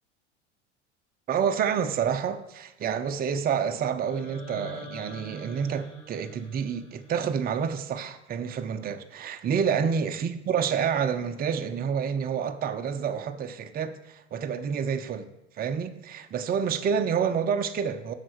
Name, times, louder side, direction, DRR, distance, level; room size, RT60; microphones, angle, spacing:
voice 1, 1.3-15.3 15.5-18.1, right 7 dB, 25° right, 0.6 m, -28 dB
sound 1, 4.0-8.0, left 1 dB, 75° left, 2.2 m, -46 dB
7.5 x 5.7 x 6.3 m
hypercardioid pair, 75°, 36 cm